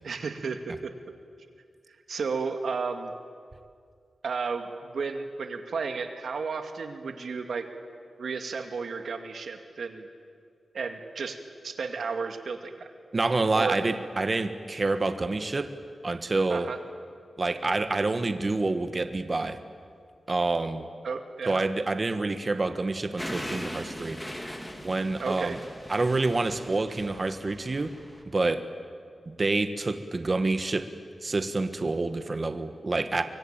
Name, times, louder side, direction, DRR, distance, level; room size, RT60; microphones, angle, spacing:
voice 1, 0.0-0.9 2.1-3.1 4.2-7.7 8.2-10.1 10.7-12.9 13.5-13.8 16.5-16.8 21.0-21.6 25.2-25.6, right 5 dB, 75° right, 6 dB, 2.2 m, -33 dB
voice 2, 13.1-15.7 16.0-16.7 17.4-19.6 20.3-20.9 21.5-24.2 24.8-25.6 25.9-27.9 28.3-28.6 29.3-30.9 31.2-33.2, right 3 dB, 35° right, 10 dB, 1.4 m, -27 dB
sound 1, 23.2-28.2, equal, 5° left, 2.6 m, -40 dB
24.5 x 23.5 x 9.0 m, 2.2 s
wide cardioid pair, 130°, 0 cm